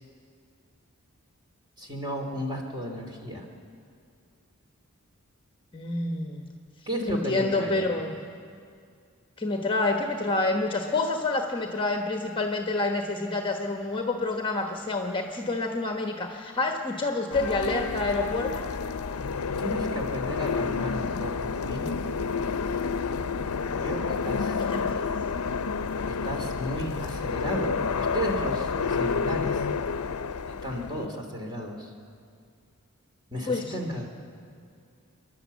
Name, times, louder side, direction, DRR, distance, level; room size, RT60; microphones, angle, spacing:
voice 1, 1.8-3.5 6.9-7.9 19.6-22.2 23.8-24.6 26.1-29.6 30.4-31.9 33.3-34.1, equal, 20° right, 2 dB, 2.8 m, -34 dB
voice 2, 5.7-6.4 7.1-8.2 9.4-18.7 24.7-24.9 33.5-33.7, left 2 dB, 25° left, 3 dB, 1.2 m, -28 dB
sound 1, 17.3-31.1, left 5 dB, 85° left, 0.6 m, -29 dB
28.5 x 11.5 x 8.3 m, 2.3 s
head